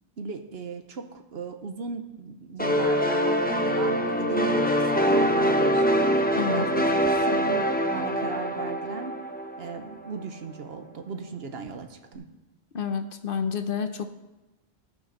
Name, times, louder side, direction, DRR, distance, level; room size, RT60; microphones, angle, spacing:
voice 1, 0.2-5.9 6.5-9.1 9.6-12.2, right 4 dB, 65° right, 7 dB, 1.1 m, -37 dB
sound 1, 2.6-10.1, equal, 10° left, 0.7 m, -24 dB
voice 2, 6.3-6.7 12.7-14.1, left 6 dB, 55° left, 8 dB, 0.9 m, -29 dB
17.5 x 6.1 x 3.9 m, 1.0 s
omnidirectional pair, 1.1 m